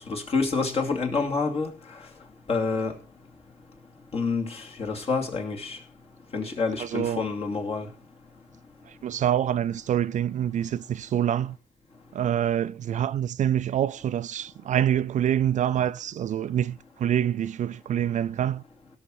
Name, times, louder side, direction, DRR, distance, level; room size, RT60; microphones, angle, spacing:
voice 1, 0.1-1.7 2.5-2.9 4.1-5.8 6.3-7.9, left 4 dB, 40° left, 2.7 m, -27 dB
voice 2, 6.8-7.2 9.0-11.6 12.1-18.6, right 10 dB, 50° right, 0.4 m, -26 dB
17.0 x 6.5 x 4.7 m
cardioid pair, 120°, 16 cm